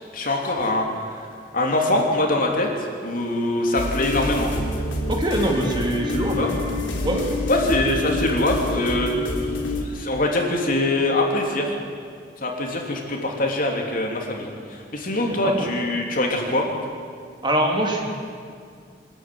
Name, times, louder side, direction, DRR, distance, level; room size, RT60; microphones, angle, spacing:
voice 1, 0.1-0.8 1.5-2.7 3.0-4.5 6.4-6.5 7.5-9.1 9.8-11.7 12.4-14.5 14.9-16.7, left 1 dB, 50° left, 1 dB, 3.2 m, -23 dB
sound 1, 3.7-9.8, left 2 dB, 90° left, 3.4 m, -27 dB
voice 2, 5.1-6.5 7.0-7.3 15.2-15.7 17.4-18.1, right 1 dB, 25° right, 1 dB, 2.9 m, -23 dB
24.5 x 14.0 x 9.6 m, 2.2 s
head